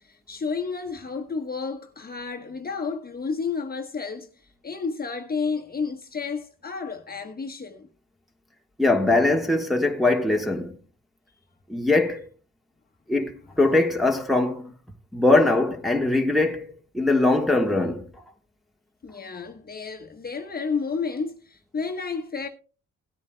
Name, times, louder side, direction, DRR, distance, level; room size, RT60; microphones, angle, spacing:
voice 1, 0.0-4.3 4.6-7.9 19.0-22.5, left 5 dB, 30° left, 1.2 m, -31 dB
voice 2, 8.8-10.8 11.7-12.3 13.1-13.3 13.6-14.7 15.1-16.7 16.9-18.1, left 2 dB, ahead, 1.4 m, -21 dB
17.5 x 9.4 x 2.2 m
cardioid pair, 90°, 30 cm